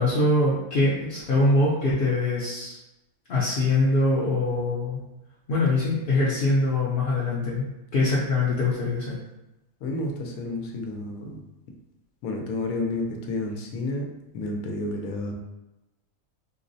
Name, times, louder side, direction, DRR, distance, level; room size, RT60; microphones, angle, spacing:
voice 1, 0.0-2.8 3.3-5.0 5.5-7.7 7.9-9.2, left 2 dB, 55° left, -7 dB, 0.6 m, -23 dB
voice 2, 9.8-11.4 12.2-14.1 14.3-15.3, left 2 dB, 85° left, 2 dB, 1.1 m, -30 dB
4.4 x 2.0 x 2.6 m, 0.96 s
omnidirectional pair, 1.5 m